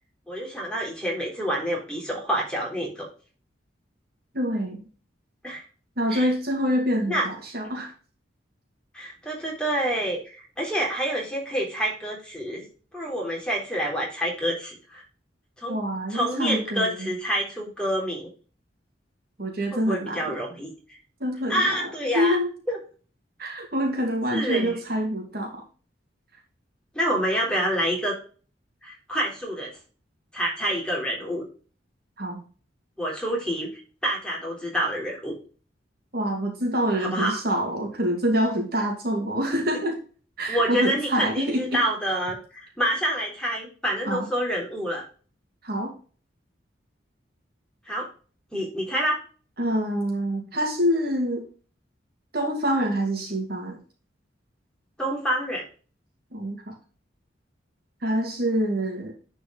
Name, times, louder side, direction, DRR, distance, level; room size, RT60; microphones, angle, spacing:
voice 1, 0.3-3.1 5.4-5.6 6.1-6.3 7.1-7.3 8.9-12.6 12.9-15.0 15.6-15.8 16.1-18.3 19.7-20.7 21.5-22.4 22.7-22.8 24.3-24.7 26.9-28.2 28.8-29.7 30.3-31.4 33.0-33.7 34.0-35.3 37.0-37.4 40.5-45.0 47.9-48.1 48.5-49.2 55.0-55.6, equal, 5° left, -3 dB, 3.7 m, -27 dB
voice 2, 4.3-4.8 6.0-7.9 15.7-17.1 19.4-20.4 21.2-22.5 23.4-25.6 32.2-32.4 36.1-40.0 40.4-41.8 44.0-44.3 45.6-45.9 49.6-51.5 52.3-53.8 56.3-56.8 58.0-59.1, equal, 55° right, 2 dB, 2.5 m, -26 dB
10.5 x 5.1 x 3.9 m, 0.38 s
head